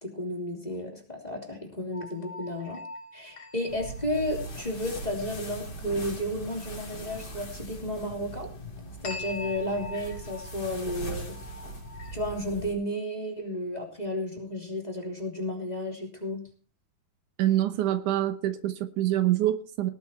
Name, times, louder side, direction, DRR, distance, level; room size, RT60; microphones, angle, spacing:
voice 1, 0.0-2.8 3.1-8.5 9.0-11.4 12.1-16.4, left 1 dB, 15° left, 1 dB, 2.9 m, -33 dB
sound 1, 1.9-4.8 9.0-12.6, left 2 dB, 65° left, 4.9 m, -43 dB
sound 2, 3.7-12.7, right 1 dB, 30° left, 3.7 m, -40 dB
voice 2, 17.4-19.9, right 13 dB, 75° right, 10 dB, 2.5 m, -25 dB
18.5 x 9.2 x 4.4 m, 0.39 s
omnidirectional pair, 3.6 m